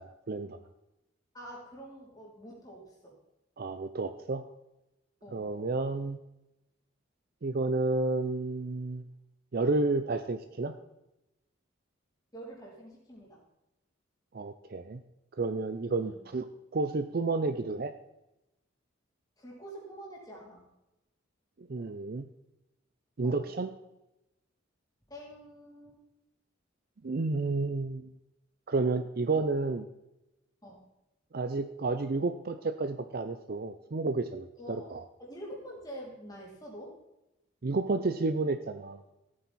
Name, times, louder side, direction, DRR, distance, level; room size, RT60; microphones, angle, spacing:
voice 1, 0.3-0.6 3.6-4.4 5.3-6.2 7.4-9.0 9.5-10.7 14.3-15.0 15.4-16.4 16.7-17.9 21.6-22.3 23.2-23.7 27.0-28.1 28.7-29.8 31.3-35.0 37.6-39.0, right 3 dB, 50° right, 10 dB, 0.5 m, -31 dB
voice 2, 1.3-3.2 5.2-5.5 12.3-13.4 16.0-16.2 19.4-20.7 23.2-23.5 25.1-26.0 29.3-29.5 30.6-30.8 34.6-34.9 35.2-37.0, right 1 dB, 20° left, -4 dB, 3.1 m, -46 dB
14.5 x 8.8 x 4.1 m, 0.95 s
head